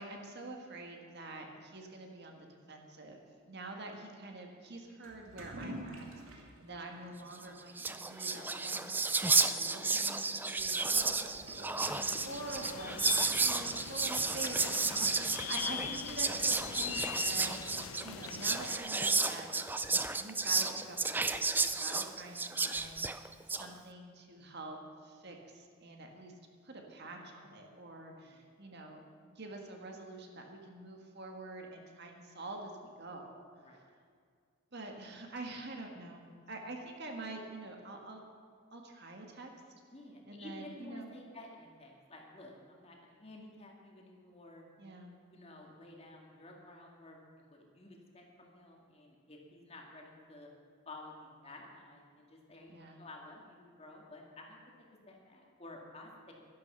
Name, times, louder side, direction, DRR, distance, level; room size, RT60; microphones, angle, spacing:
voice 1, 0.0-19.5 20.2-26.3 26.6-33.8 34.7-38.2 38.7-39.5 40.3-41.1 44.8-45.2 52.7-53.0, right 2 dB, 50° right, 2 dB, 1.6 m, -47 dB
Toilet flush / Liquid, 5.0-16.7, right 1 dB, 75° right, 2.4 m, -52 dB
Whispering, 7.4-7.5 7.7-23.7, right 3 dB, 10° right, 0.3 m, -32 dB
sound 1, 11.8-18.8, left 9 dB, 75° left, 0.6 m, -42 dB
voice 2, 39.9-44.7 45.3-50.5 50.9-56.3, left 2 dB, 30° left, 0 dB, 2.1 m, -52 dB
12.0 x 11.0 x 6.8 m, 2.1 s
head